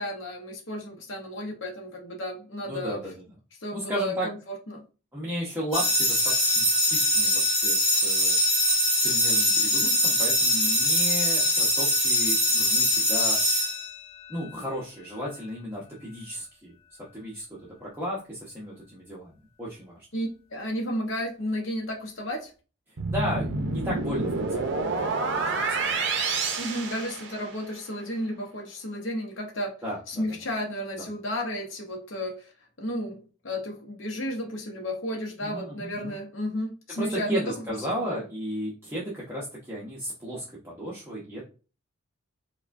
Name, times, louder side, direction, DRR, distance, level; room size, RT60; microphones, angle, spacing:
voice 1, 0.0-3.0 3.6-4.8 20.1-22.5 26.6-29.7 30.1-32.5 32.8-38.2, equal, 60° left, 0 dB, 0.7 m, -33 dB
voice 2, 2.7-3.1 3.7-4.3 5.1-8.4 9.0-13.4 14.3-16.7 17.1-19.3 19.6-20.0 23.1-25.6 29.8-30.4 35.4-36.2 36.9-41.4, equal, 10° right, -6 dB, 0.7 m, -34 dB
sound 1, 5.7-14.4, equal, 25° left, 1.7 m, -23 dB
sound 2, 23.0-27.7, right 3 dB, 55° right, 0.6 m, -28 dB
4.7 x 2.2 x 2.5 m, 0.35 s
head